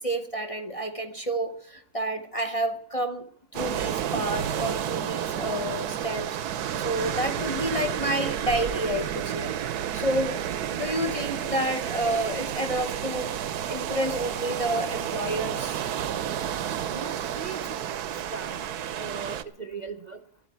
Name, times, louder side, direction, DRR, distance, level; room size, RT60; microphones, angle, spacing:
voice 1, 0.0-3.3 3.5-6.3 6.8-9.6 9.9-10.4 10.7-15.8, right 1 dB, 30° left, 7 dB, 0.7 m, -30 dB
sound 1, 3.5-19.4, right 10 dB, 85° right, 1.3 m, -31 dB
voice 2, 16.9-18.6 19.0-20.2, right 5 dB, 40° right, 7 dB, 0.6 m, -39 dB
13.0 x 8.5 x 9.5 m, 0.63 s
omnidirectional pair, 1.6 m